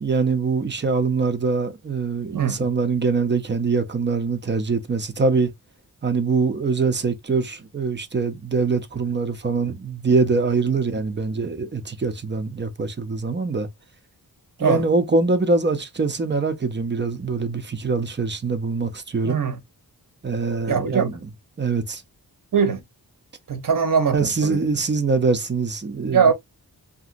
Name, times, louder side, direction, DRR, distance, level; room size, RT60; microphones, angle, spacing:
voice 1, 0.0-5.5 6.0-13.7 14.6-19.4 20.2-21.2 21.6-22.0 24.1-26.3, right 4 dB, 30° right, 0.5 m, -23 dB
voice 2, 19.2-19.6 20.7-21.1 22.5-22.8 23.5-24.6 26.1-26.3, right 6 dB, 60° right, 0.9 m, -21 dB
2.9 x 2.6 x 2.5 m
wide cardioid pair, 110°, 38 cm